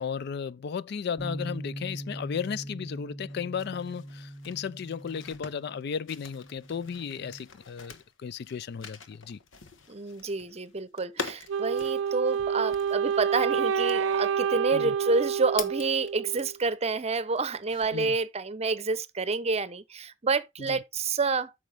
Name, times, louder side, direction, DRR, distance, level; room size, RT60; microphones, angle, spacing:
voice 1, 0.0-9.4 14.7-14.9 17.9-18.2 20.6-20.8, left 6 dB, 60° left, 0.4 m, -35 dB
Bass guitar, 1.2-7.4, equal, 20° left, 2.6 m, -41 dB
sound 1, 3.3-16.7 17.1-18.2, left 6 dB, 85° left, 1.2 m, -45 dB
voice 2, 9.9-21.5, right 4 dB, 35° right, 0.7 m, -28 dB
Wind instrument woodwind instrument, 11.5-16.5, right 7 dB, 75° right, 0.4 m, -28 dB
9.1 x 6.3 x 3.4 m
head